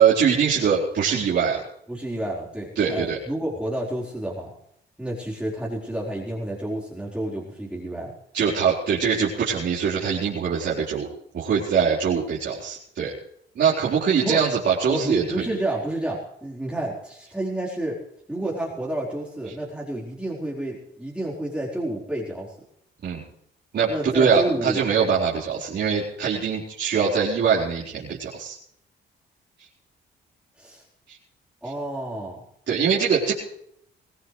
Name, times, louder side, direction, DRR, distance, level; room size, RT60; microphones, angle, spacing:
voice 1, 0.0-1.6 2.8-3.2 8.3-11.1 11.3-13.1 13.6-15.4 23.0-23.2 23.7-28.6 31.1-31.2 32.7-33.3, right 6 dB, 60° right, -6 dB, 4.4 m, -22 dB
voice 2, 1.9-4.5 5.0-8.1 14.2-14.4 14.9-18.0 18.3-22.5 23.9-24.9 30.6-30.8 31.6-32.4, right 1 dB, 5° right, -4 dB, 4.4 m, -30 dB
22.5 x 17.0 x 3.3 m, 0.71 s
cardioid pair, 90°, 20 cm